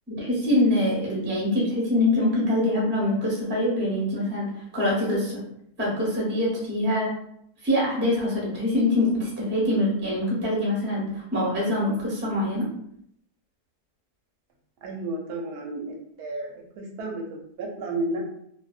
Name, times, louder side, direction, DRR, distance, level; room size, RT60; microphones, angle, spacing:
voice 1, 0.1-5.4 5.8-7.1 7.6-12.7, left 1 dB, 10° right, -6 dB, 0.6 m, -24 dB
voice 2, 14.8-18.2, right 2 dB, 85° right, 0 dB, 1.1 m, -32 dB
2.6 x 2.1 x 2.3 m, 0.71 s
omnidirectional pair, 1.6 m